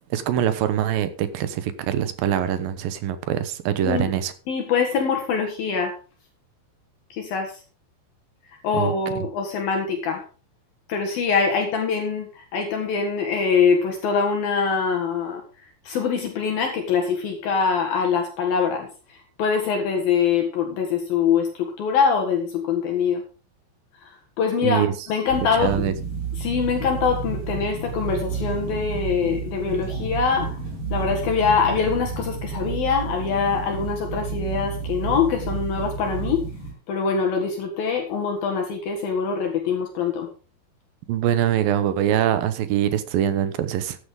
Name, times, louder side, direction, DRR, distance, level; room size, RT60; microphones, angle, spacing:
voice 1, 0.1-4.3 8.7-8.9 24.6-24.9 25.6-25.9 41.1-44.0, right 10 dB, 70° right, 12 dB, 2.4 m, -23 dB
voice 2, 4.5-5.9 7.1-7.6 8.6-10.2 10.9-15.4 15.8-23.2 24.0-25.9 26.4-30.6 30.9-36.4 36.9-40.3, left 6 dB, 65° left, 3 dB, 3.1 m, -24 dB
sound 1, 25.3-36.7, right 5 dB, 50° right, 7.0 m, -31 dB
14.0 x 9.8 x 3.7 m, 0.36 s
omnidirectional pair, 5.0 m